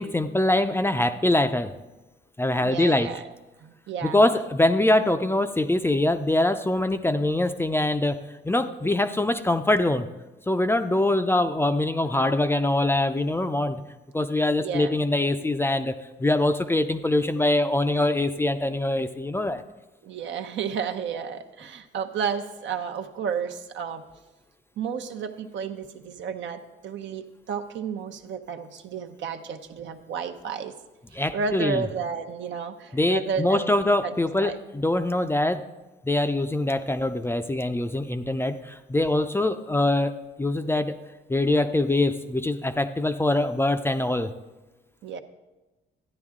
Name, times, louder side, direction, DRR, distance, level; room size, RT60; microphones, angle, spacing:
voice 1, 0.0-1.8 2.4-3.1 4.0-8.2 8.4-10.1 10.5-13.8 14.1-19.6 31.1-31.8 32.9-35.6 36.0-40.1 40.4-41.0 41.3-44.3, left 1 dB, 10° left, 9 dB, 0.5 m, -23 dB
voice 2, 2.6-3.3 3.6-4.2 14.6-14.9 20.0-24.0 24.8-30.7 31.1-34.1 34.4-34.6 45.0-45.2, right 6 dB, 70° right, 6 dB, 0.8 m, -32 dB
13.0 x 9.6 x 3.7 m, 1.1 s
cardioid pair, 90°, 20 cm